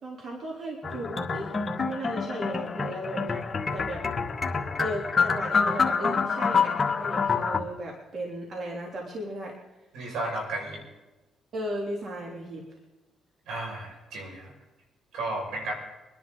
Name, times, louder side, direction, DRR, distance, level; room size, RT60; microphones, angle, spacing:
voice 1, 0.0-1.5 1.8-3.4 3.7-4.0 4.8-9.5 11.5-12.6, right 1 dB, 50° right, -1 dB, 3.3 m, -35 dB
sound 1, 0.8-7.6, left 5 dB, 35° left, 1.7 m, -27 dB
voice 2, 9.9-10.8 13.5-14.5 15.1-15.7, right 2 dB, 85° right, 0 dB, 5.8 m, -33 dB
25.0 x 11.0 x 3.9 m, 1.1 s
cardioid pair, 90°, 0 cm